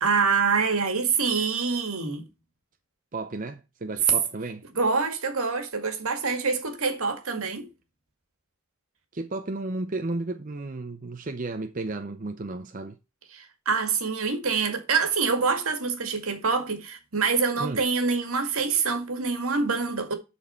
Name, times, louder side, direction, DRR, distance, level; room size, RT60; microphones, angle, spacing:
voice 1, 0.0-2.2 4.8-7.7 13.3-20.1, right 5 dB, 75° right, 2.0 m, -26 dB
voice 2, 3.1-4.6 9.1-13.0 17.6-17.8, right 2 dB, 35° right, 0.6 m, -33 dB
12.0 x 4.3 x 4.4 m
head